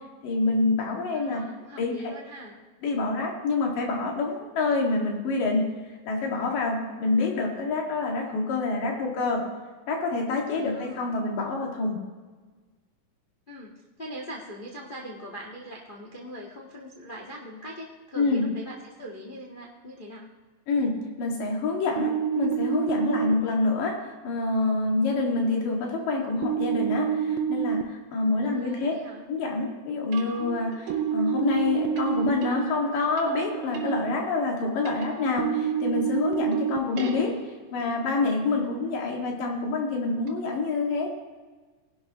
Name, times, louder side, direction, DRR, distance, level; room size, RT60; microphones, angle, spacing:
voice 1, 0.2-1.5 1.8-2.1 2.8-5.7 6.1-9.4 9.9-12.0 18.2-18.5 20.7-28.9 29.3-37.4 37.7-41.1, left 3 dB, 75° left, 0 dB, 3.6 m, -27 dB
voice 2, 1.1-2.6 10.5-11.1 13.5-20.3 28.4-29.2 36.9-37.3, equal, 55° left, -3 dB, 0.5 m, -42 dB
sound 1, 22.0-23.3 26.4-27.8 30.9-32.3 35.4-36.8, right 9 dB, 85° right, 2.4 m, -27 dB
sound 2, 28.4-28.7 30.1-36.0 36.5-37.9 40.3-40.4, right 9 dB, 65° right, 2.7 m, -38 dB
18.5 x 11.5 x 3.0 m, 1.4 s
omnidirectional pair, 4.0 m